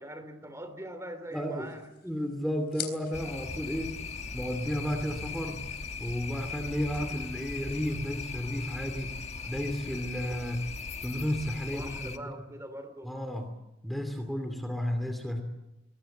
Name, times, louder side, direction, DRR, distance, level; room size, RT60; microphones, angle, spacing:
voice 1, 0.0-1.9 11.7-13.1, right 1 dB, 15° right, 9 dB, 2.9 m, -42 dB
sound 1, 1.3-8.9, left 10 dB, 60° left, 3.9 m, -48 dB
voice 2, 1.3-1.7 2.0-4.0 4.3-5.6 6.0-9.2 9.5-10.7 11.0-12.3 13.0-13.5 13.8-15.4, equal, ahead, 5 dB, 2.6 m, -33 dB
sound 2, 3.1-12.2, left 4 dB, 35° left, 1.3 m, -39 dB
24.0 x 21.5 x 7.9 m, 0.92 s
head